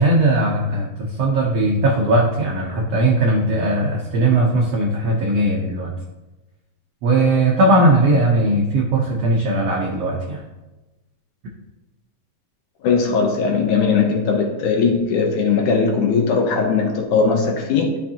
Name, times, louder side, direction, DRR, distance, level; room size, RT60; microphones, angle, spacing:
voice 1, 0.0-5.9 7.0-10.4, right 2 dB, 75° right, -2 dB, 1.4 m, -18 dB
voice 2, 12.8-18.0, left 5 dB, 70° left, 2 dB, 2.1 m, -19 dB
12.0 x 5.9 x 2.8 m, 1.1 s
omnidirectional pair, 4.0 m